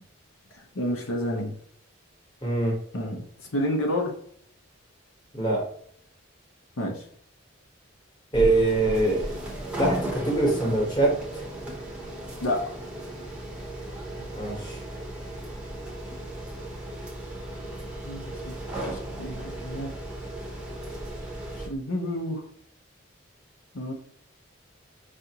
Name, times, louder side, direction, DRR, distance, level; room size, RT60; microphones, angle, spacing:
voice 1, 0.5-1.5 2.9-4.1 6.8-7.1 12.4-12.6 14.2-14.3 18.0-18.5 18.8-19.9 21.5-22.4 23.7-23.9, left 1 dB, 85° left, 1 dB, 0.8 m, -30 dB
voice 2, 2.4-2.8 5.3-5.6 8.3-9.3 9.8-11.5 14.3-14.8, right 2 dB, 20° left, -1 dB, 1.0 m, -24 dB
sound 1, 8.3-21.7, right 1 dB, 5° right, 0.7 m, -36 dB
4.9 x 2.6 x 2.8 m, 0.64 s
head